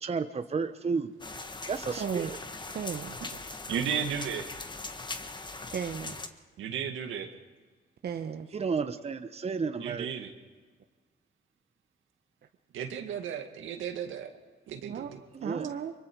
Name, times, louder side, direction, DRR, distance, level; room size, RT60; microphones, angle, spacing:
voice 1, 0.0-1.1 1.7-2.3 8.5-10.1 15.3-15.7, right 5 dB, 30° right, 9 dB, 1.0 m, -32 dB
sound 1, 1.2-6.3, left 3 dB, 20° left, 1.4 m, -40 dB
voice 2, 2.0-2.4 2.7-3.2 5.7-6.2 8.0-8.5 14.8-15.1 15.4-15.9, right 7 dB, 55° right, 6 dB, 1.0 m, -35 dB
voice 3, 3.7-4.5 6.6-7.3 9.8-10.3 12.7-14.3 14.7-15.2, right 8 dB, 80° right, 5 dB, 2.1 m, -34 dB
24.0 x 23.5 x 4.7 m, 1.5 s
cardioid pair, 90°, 20 cm